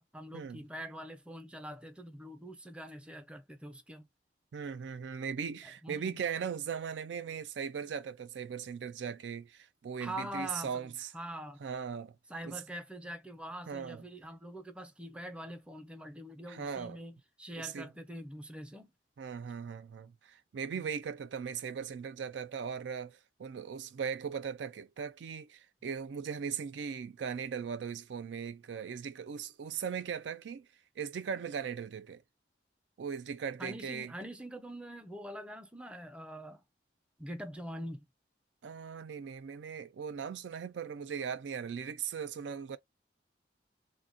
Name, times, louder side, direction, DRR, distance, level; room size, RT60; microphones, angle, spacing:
voice 1, 0.0-4.1 5.6-6.3 10.0-11.6 12.3-18.9 20.7-20.9 33.6-36.6 37.2-38.1, equal, 5° right, 0.5 m, -44 dB
voice 2, 4.5-11.1 11.6-12.2 12.4-12.6 13.7-14.0 16.5-17.0 17.6-17.9 19.2-30.7 31.0-32.2 33.0-34.1 38.6-42.8, right 7 dB, 85° right, 0.4 m, -39 dB
3.3 x 2.1 x 2.5 m
head